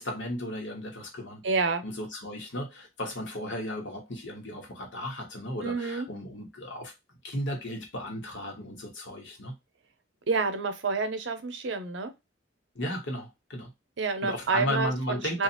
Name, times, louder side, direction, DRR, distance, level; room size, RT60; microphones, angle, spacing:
voice 1, 0.0-1.4 1.8-6.9 7.2-9.6 12.7-13.7 14.2-15.4, left 1 dB, 75° left, 1.1 m, -35 dB
voice 2, 1.4-1.8 5.6-6.1 10.3-12.1 14.0-15.4, right 4 dB, 70° right, 0.6 m, -28 dB
2.8 x 2.4 x 2.4 m
head